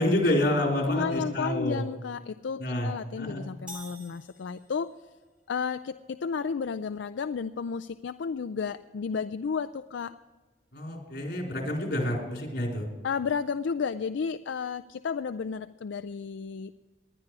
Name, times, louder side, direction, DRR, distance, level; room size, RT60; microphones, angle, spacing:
voice 1, 0.0-1.9 2.6-3.4 10.7-12.9, left 1 dB, 60° left, 0 dB, 4.0 m, -28 dB
voice 2, 0.9-4.9 5.5-10.1 13.0-16.7, left 6 dB, 80° left, 12 dB, 0.4 m, -32 dB
sound 1, 3.7-5.1, equal, 5° right, 2.2 m, -46 dB
19.5 x 11.0 x 4.8 m, 1.3 s
head